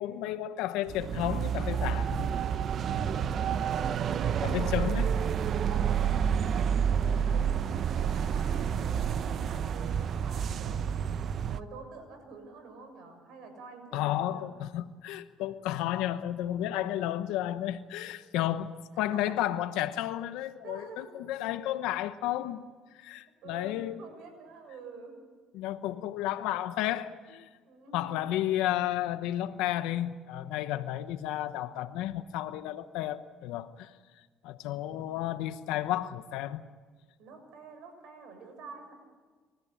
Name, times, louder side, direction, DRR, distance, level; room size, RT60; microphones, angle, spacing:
voice 1, 0.0-2.3 4.4-5.1 13.9-22.6 22.9-24.0 25.5-27.5 27.9-33.9 34.4-36.6, left 13 dB, 85° left, 10 dB, 0.9 m, -32 dB
sound 1, 0.9-11.6, right 7 dB, 55° right, 0.8 m, -29 dB
voice 2, 4.0-5.0 5.6-11.0 11.5-14.5 19.1-19.4 20.6-21.1 23.4-25.2 27.6-28.1 37.2-38.9, right 4 dB, 75° right, 6 dB, 6.9 m, -48 dB
29.0 x 14.0 x 8.8 m, 1.5 s
cardioid pair, 90°, 0 cm